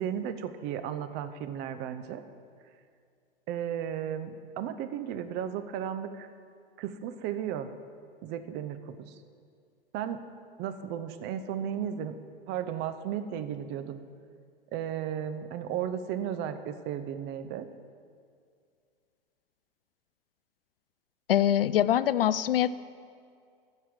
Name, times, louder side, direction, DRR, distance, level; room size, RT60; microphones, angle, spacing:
voice 1, 0.0-2.2 3.5-6.3 6.8-7.7 8.2-9.1 9.9-10.2 10.6-12.2 12.5-14.0 14.7-17.7, right 9 dB, 35° right, 10 dB, 0.8 m, -34 dB
voice 2, 21.3-22.8, left 11 dB, 75° left, 17 dB, 0.4 m, -24 dB
14.0 x 5.6 x 7.6 m, 2.2 s
figure-of-eight pair, 95°, 29 cm